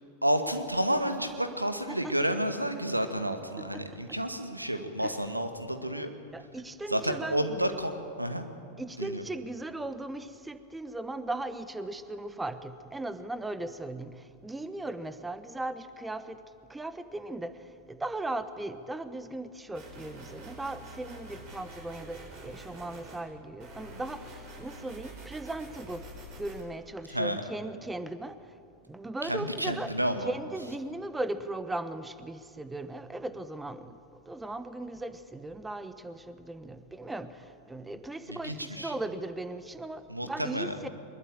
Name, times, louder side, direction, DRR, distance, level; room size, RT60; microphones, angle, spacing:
voice 1, 0.2-6.1 6.9-8.4 9.0-9.2 27.1-27.5 29.2-30.3 38.3-38.9 40.1-40.9, equal, 85° right, 8 dB, 1.8 m, -30 dB
voice 2, 3.6-4.2 5.0-5.1 6.3-7.6 8.8-16.4 16.7-17.6 17.9-26.1 26.4-28.4 28.9-29.9 30.2-34.0 34.3-40.9, right 2 dB, 10° right, 12 dB, 1.2 m, -38 dB
sound 1, 19.7-23.2 23.6-26.6, right 1 dB, 40° right, 6.8 m, -46 dB
23.5 x 21.5 x 8.9 m, 2.4 s
figure-of-eight pair, 90°, 0 cm